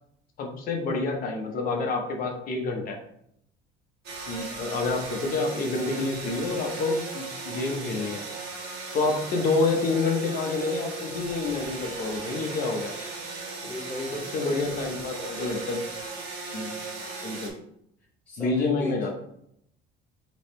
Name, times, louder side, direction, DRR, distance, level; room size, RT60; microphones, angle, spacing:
voice 1, 0.4-3.0 4.3-8.2 8.9-12.9 14.3-15.8 16.5-16.7 17.2-17.5 18.4-19.2, left 3 dB, 45° left, 2 dB, 0.9 m, -28 dB
sound 1, 4.0-17.5, right 3 dB, 55° right, 1.3 m, -37 dB
voice 2, 13.6-14.9 18.3-19.0, left 1 dB, 5° left, -7 dB, 0.8 m, -36 dB
4.9 x 3.0 x 3.1 m, 0.72 s
cardioid pair, 160°, 21 cm